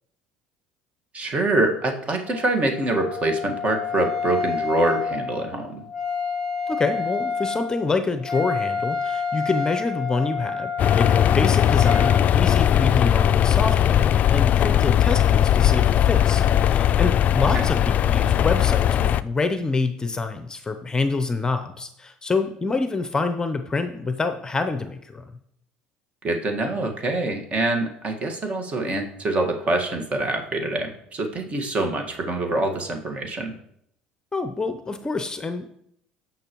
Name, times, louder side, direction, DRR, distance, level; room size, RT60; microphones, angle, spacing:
voice 1, 1.1-5.8 17.5-17.6 26.2-33.5, right 2 dB, 40° right, 4 dB, 1.6 m, -25 dB
Wind instrument woodwind instrument, 2.2-12.2, left 5 dB, 5° right, 2.9 m, -29 dB
voice 2, 6.7-25.3 34.3-35.6, left 3 dB, 20° left, 8 dB, 0.7 m, -26 dB
sound 1, 10.8-19.2, left 10 dB, 45° left, 0.3 m, -19 dB
15.5 x 5.8 x 3.0 m, 0.72 s
hypercardioid pair, 75°, 4 cm